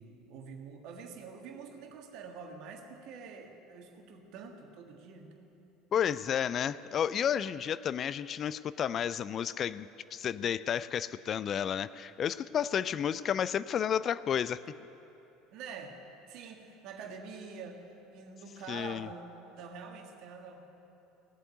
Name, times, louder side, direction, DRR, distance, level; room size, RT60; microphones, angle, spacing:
voice 1, 0.0-5.6 15.5-16.0 16.3-20.8, right 5 dB, 55° right, 3 dB, 1.6 m, -46 dB
voice 2, 5.9-14.6 18.7-19.1, left 9 dB, 40° left, 17 dB, 0.3 m, -31 dB
17.5 x 7.8 x 9.2 m, 2.9 s
figure-of-eight pair, 65°, 0 cm